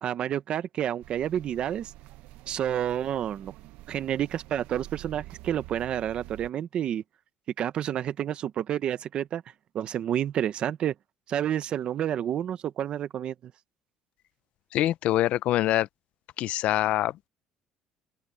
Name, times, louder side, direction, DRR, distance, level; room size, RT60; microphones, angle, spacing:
voice 1, 0.0-1.9 2.5-3.5 3.9-7.0 7.6-9.4 9.7-10.9 11.3-13.5, right 10 dB, 45° right, 0.9 m, -29 dB
sound 1, 1.0-6.5, right 17 dB, 80° right, 0.8 m, -47 dB
voice 2, 14.7-15.9 16.4-17.1, left 14 dB, 60° left, 0.5 m, -24 dB
open air
cardioid pair, 155°, 2 cm